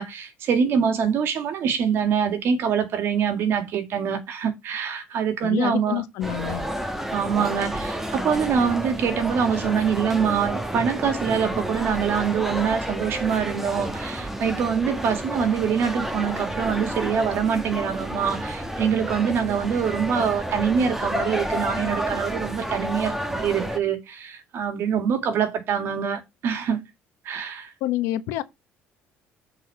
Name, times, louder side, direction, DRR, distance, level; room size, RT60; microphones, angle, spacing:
voice 1, 0.0-6.0 7.1-26.8 27.3-27.7, right 7 dB, 60° right, 2.0 m, -24 dB
voice 2, 5.4-6.6 27.8-28.4, left 14 dB, 85° left, 1.0 m, -27 dB
sound 1, 6.2-23.8, right 1 dB, 5° right, 1.4 m, -30 dB
7.9 x 4.1 x 5.6 m
cardioid pair, 105°, 4 cm